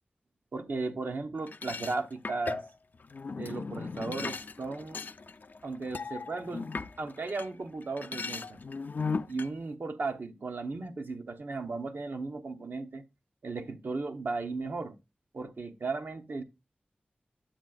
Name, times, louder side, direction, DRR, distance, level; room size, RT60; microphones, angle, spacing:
voice 1, 0.5-2.6 3.4-5.0 5.6-8.6 9.3-13.0 13.4-14.9 15.3-16.4, right 3 dB, 75° right, 0.8 m, -36 dB
sound 1, 1.5-7.5 7.8-9.5, left 4 dB, 60° left, 0.4 m, -37 dB
9.0 x 7.5 x 2.3 m
cardioid pair, 45°, 3 cm